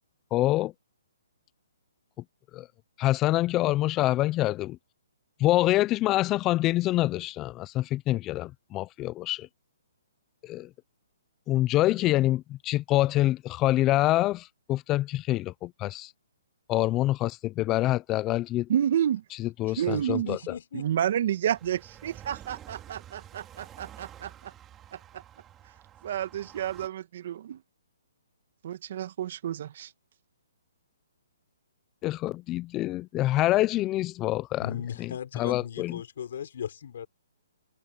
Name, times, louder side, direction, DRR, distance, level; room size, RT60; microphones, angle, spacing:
voice 1, 0.3-0.7 2.5-2.7 3.0-4.8 5.4-9.5 10.4-10.7 11.5-16.1 16.7-18.7 19.4-20.4 32.0-34.7 35.0-35.1 35.3-36.0, left 16 dB, 20° left, 0.5 m, -26 dB
voice 2, 18.7-19.2 19.8-20.4 20.7-24.5 24.9-25.0 26.0-27.6 28.6-29.9, right 10 dB, 50° right, 1.9 m, -30 dB
voice 3, 19.9-20.9 34.6-37.1, left 8 dB, 60° left, 4.0 m, -37 dB
sound 1, 21.4-26.9, right 11 dB, 15° right, 3.4 m, -49 dB
hypercardioid pair, 155°, 0 cm